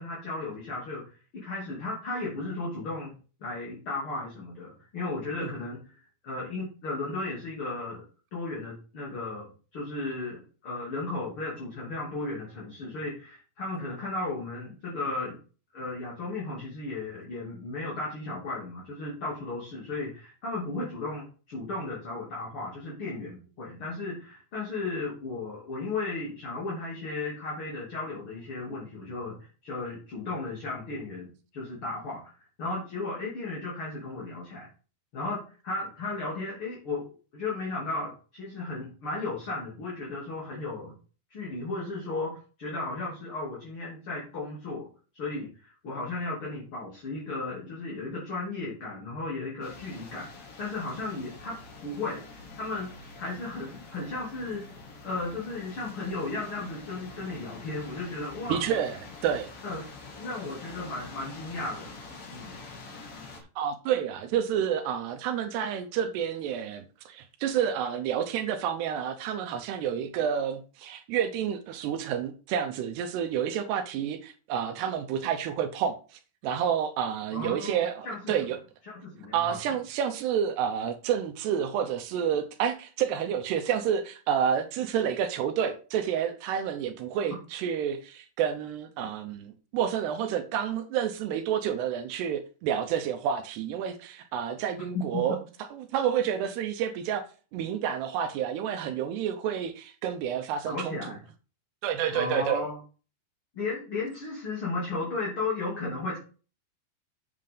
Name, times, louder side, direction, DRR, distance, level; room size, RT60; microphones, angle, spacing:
voice 1, 0.0-3.1 3.4-8.0 8.3-9.4 9.7-15.4 15.7-31.3 31.5-32.2 32.6-34.7 35.1-37.0 37.3-41.0 41.3-44.9 45.1-50.3 50.6-51.6 51.8-52.9 53.2-54.7 55.0-58.6 59.6-59.9 60.2-62.0 62.3-62.6 77.3-78.3 78.9-79.6 94.9-95.2 100.6-101.2 102.1-102.8 103.5-106.2, left 3 dB, 35° left, 3.2 m, -35 dB
sound 1, 49.6-63.4, left 3 dB, 50° left, 4.0 m, -46 dB
voice 2, 58.5-59.5 63.6-76.0 76.4-78.6 79.3-95.4 95.7-97.2 97.5-101.0 101.8-102.7, right 8 dB, 75° right, 2.8 m, -29 dB
9.4 x 7.7 x 3.8 m
omnidirectional pair, 5.1 m